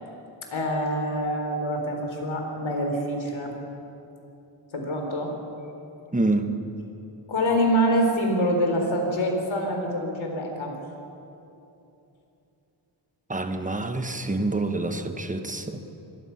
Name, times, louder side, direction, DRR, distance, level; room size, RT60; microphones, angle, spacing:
voice 1, 0.5-3.5 4.7-5.3 7.3-10.7, equal, 70° left, 2 dB, 4.0 m, -25 dB
voice 2, 6.1-6.5 13.3-15.8, right 2 dB, 15° right, 7 dB, 1.3 m, -27 dB
25.0 x 20.5 x 5.9 m, 2.9 s
wide cardioid pair, 140°, 49 cm